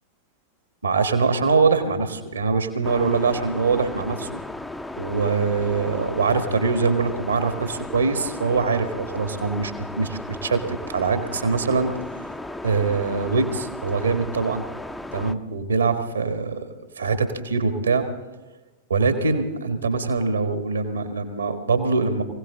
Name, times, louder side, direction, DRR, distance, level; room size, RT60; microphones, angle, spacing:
voice 1, 0.8-4.3 5.0-9.7 10.0-11.9 12.6-14.6 15.1-16.7 17.0-18.1 18.9-22.2, right 4 dB, 75° right, 8 dB, 1.4 m, -23 dB
sound 1, 2.8-15.3, left 1 dB, 5° left, 0.6 m, -35 dB
23.0 x 16.5 x 3.7 m, 1.1 s
figure-of-eight pair, 90°, 0 cm